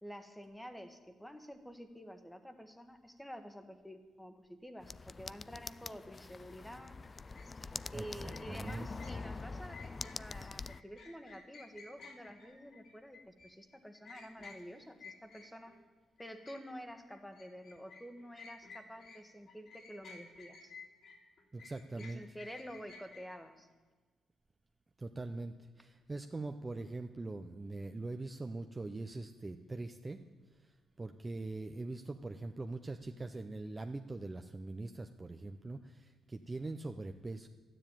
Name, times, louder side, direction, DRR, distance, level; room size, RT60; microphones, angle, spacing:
voice 1, 0.0-7.0 7.9-15.8 16.2-20.7 21.9-23.7, equal, 5° left, 7 dB, 1.5 m, -49 dB
sound 1, 4.8-10.8, left 3 dB, 30° left, 0.3 m, -45 dB
sound 2, 7.3-7.5 8.3-15.8 16.2-19.2 19.5-23.4, left 4 dB, 65° left, 3.2 m, -54 dB
voice 2, 7.7-8.9 21.5-22.2 25.0-30.2 30.6-30.7 31.0-37.5, right 2 dB, 20° right, 6 dB, 0.7 m, -42 dB
12.0 x 10.0 x 9.1 m, 1.4 s
cardioid pair, 90°, 0 cm